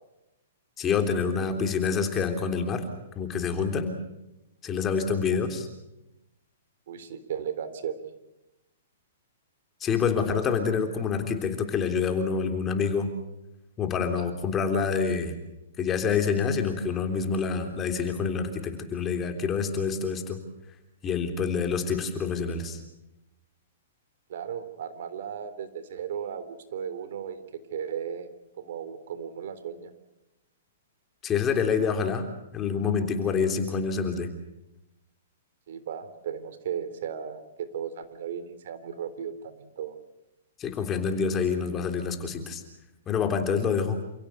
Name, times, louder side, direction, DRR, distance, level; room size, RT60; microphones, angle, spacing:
voice 1, 0.8-2.8 3.1-3.9 4.6-5.7 9.8-13.1 13.8-15.4 15.8-20.4 21.0-22.8 31.2-34.3 40.6-42.6 43.1-44.0, left 6 dB, 20° left, 6 dB, 3.4 m, -27 dB
voice 2, 6.9-8.1 24.3-27.4 27.7-28.3 28.6-29.9 35.7-39.9, right 8 dB, 65° right, 12 dB, 3.4 m, -35 dB
29.0 x 16.5 x 8.1 m, 0.93 s
hypercardioid pair, 150°, 0 cm